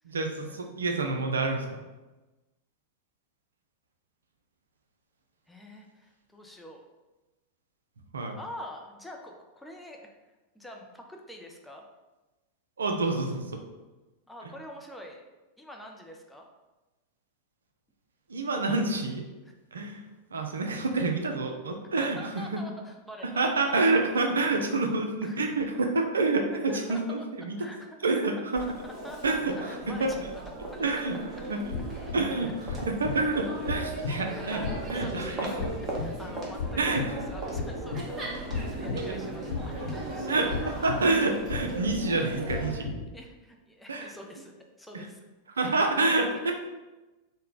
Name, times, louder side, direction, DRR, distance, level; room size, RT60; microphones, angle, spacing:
voice 1, 0.0-1.8 8.1-8.4 12.8-13.6 18.3-19.2 19.7-20.0 20.3-22.6 23.2-27.6 28.0-28.6 29.2-30.1 30.8-31.2 31.5-31.6 32.1-34.6 34.9-35.5 36.8-37.1 40.3-42.9 43.9-44.1 44.9-45.1 45.5-46.5, right 3 dB, 70° right, 4 dB, 0.4 m, -28 dB
voice 2, 5.5-6.8 8.3-10.1 10.5-11.8 14.3-15.2 15.6-16.5 22.0-24.0 25.2-25.5 26.5-27.2 27.6-28.0 28.6-30.2 30.7-30.8 32.4-32.6 34.3-40.2 42.7-45.2 45.6-45.7 46.3-46.5, equal, 5° left, 1 dB, 0.4 m, -46 dB
Crowd, 28.6-42.7, right 2 dB, 25° right, 0.9 m, -37 dB
sound 1, 31.7-43.1, left 4 dB, 60° left, 0.8 m, -37 dB
3.2 x 2.1 x 3.8 m, 1.1 s
figure-of-eight pair, 90°, 0 cm